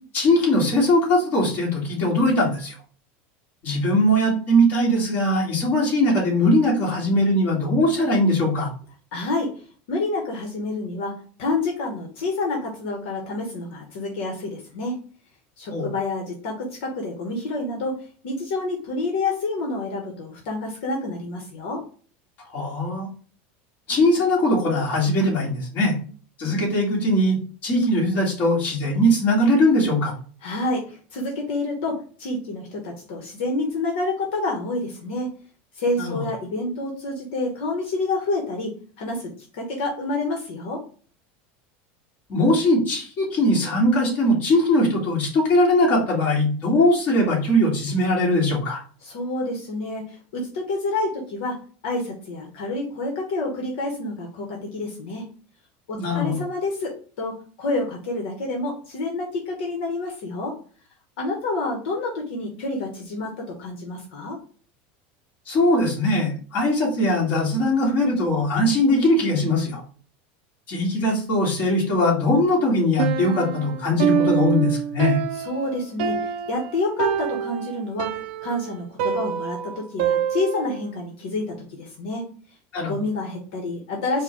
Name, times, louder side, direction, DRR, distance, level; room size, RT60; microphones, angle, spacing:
voice 1, 0.1-2.7 3.6-8.7 15.7-15.9 22.5-23.1 23.9-26.0 26.4-27.4 27.6-30.1 36.0-36.2 42.3-48.8 56.0-56.4 65.5-69.8 70.7-75.2 82.7-82.9, left 1 dB, 30° left, -3 dB, 1.8 m, -20 dB
voice 2, 9.1-9.5 9.9-11.1 11.4-15.0 15.6-17.9 18.2-21.8 30.4-35.3 35.8-38.7 39.0-40.8 49.0-51.6 51.8-55.3 55.9-60.6 61.2-64.4 75.3-78.1 78.4-82.3 82.9-84.2, left 2 dB, 65° left, 0 dB, 1.1 m, -28 dB
Piano, 73.0-80.8, right 8 dB, 55° right, 0.5 m, -26 dB
4.8 x 2.3 x 4.4 m, 0.42 s
supercardioid pair, 175°, 6 cm